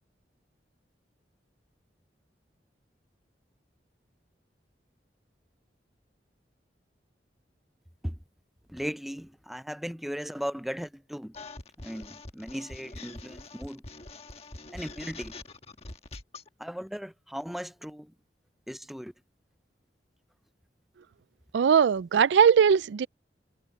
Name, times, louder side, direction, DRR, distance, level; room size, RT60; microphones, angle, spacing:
voice 1, 8.7-11.3 11.8-13.8 14.7-15.3 16.6-18.1 18.7-19.1, equal, ahead, 0.5 m, -37 dB
sound 1, 11.3-16.5, left 2 dB, 35° left, 1.4 m, -44 dB
voice 2, 21.5-23.1, right 7 dB, 85° right, 0.4 m, -20 dB
head